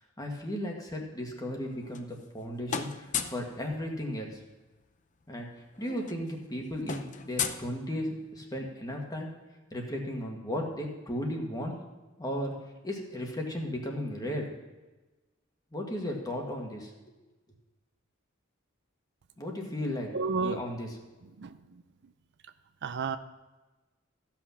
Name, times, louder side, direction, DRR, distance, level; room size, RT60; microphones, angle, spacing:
voice 1, 0.2-4.4 5.3-5.5 5.8-9.3 9.7-11.7 12.2-12.5 12.8-14.5 15.7-16.9 19.4-20.9, left 1 dB, 20° left, 1 dB, 1.8 m, -35 dB
sound 1, 1.6-2.4 2.7-3.5 4.9-5.0 5.2-5.4 5.7-8.3, left 7 dB, 40° left, 0.6 m, -36 dB
voice 2, 20.1-20.6 21.4-21.8 22.8-23.2, right 4 dB, 55° right, 11 dB, 0.5 m, -31 dB
15.0 x 6.1 x 5.7 m, 1.2 s
head